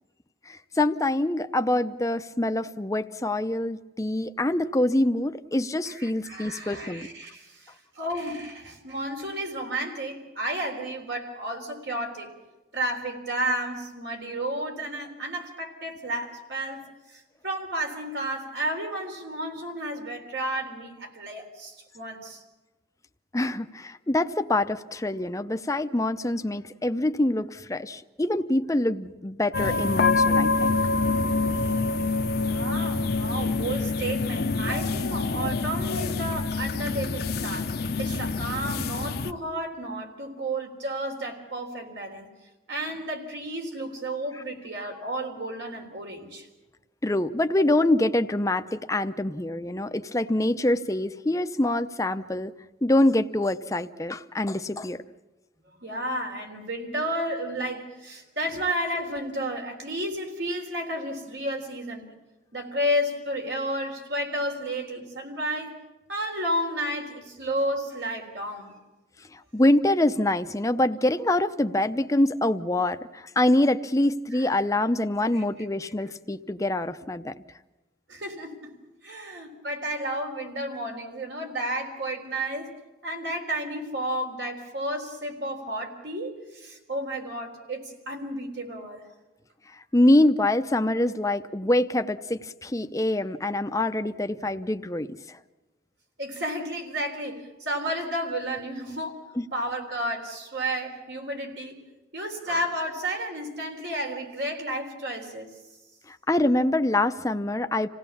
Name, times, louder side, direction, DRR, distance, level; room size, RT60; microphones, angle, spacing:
voice 1, 0.5-7.1 23.3-30.8 47.0-52.5 52.8-55.0 69.5-77.3 89.9-95.4 99.4-99.5 106.1-107.9, left 1 dB, 20° left, 9 dB, 0.7 m, -25 dB
voice 2, 5.9-12.3 12.7-22.4 32.4-37.7 38.0-42.3 42.7-46.5 55.8-62.1 62.5-65.7 66.1-68.8 74.3-74.5 75.3-75.4 78.1-78.8 79.0-82.7 83.0-89.0 96.2-99.2 99.5-101.8 102.1-105.5, right 1 dB, 70° right, 3 dB, 3.8 m, -32 dB
sound 1, 29.5-39.3, left 3 dB, 55° left, 0.8 m, -26 dB
27.0 x 17.0 x 7.2 m, 1.1 s
head